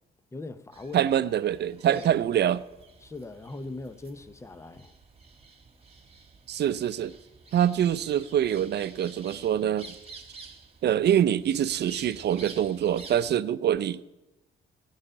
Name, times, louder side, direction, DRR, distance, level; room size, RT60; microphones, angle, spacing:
voice 1, 0.3-1.1 1.8-2.1 3.0-4.9, left 2 dB, 15° left, 0.7 m, -40 dB
sound 1, 0.7-13.3, right 4 dB, 30° right, 1.7 m, -49 dB
voice 2, 0.9-2.6 6.5-7.1 7.5-9.9 10.8-14.1, right 10 dB, 60° right, 0.6 m, -25 dB
15.5 x 5.7 x 10.0 m
cardioid pair, 90°, 20 cm